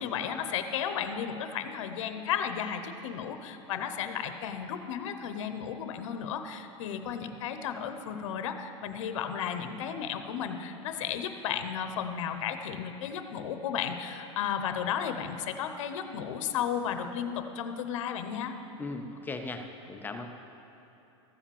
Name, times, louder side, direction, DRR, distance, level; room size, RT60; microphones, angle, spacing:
voice 1, 0.0-18.5, left 8 dB, 70° left, 8 dB, 0.8 m, -34 dB
voice 2, 18.8-20.3, left 3 dB, 10° left, 5 dB, 0.5 m, -38 dB
14.5 x 5.0 x 7.0 m, 2.9 s
supercardioid pair, 150°, 16 cm